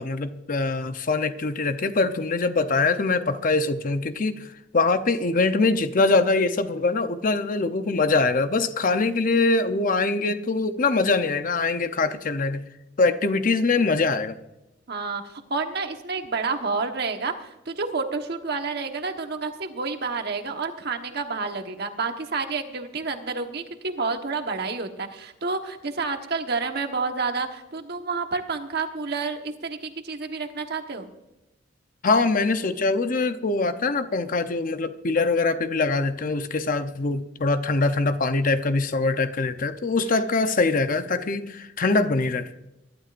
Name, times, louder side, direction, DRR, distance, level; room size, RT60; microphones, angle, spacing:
voice 1, 0.0-4.5 4.7-12.6 13.0-14.4 32.0-42.5, left 3 dB, 45° left, 0.7 m, -23 dB
voice 2, 14.9-31.1 40.0-40.2, right 4 dB, 60° right, 1.3 m, -29 dB
22.5 x 12.0 x 2.6 m
head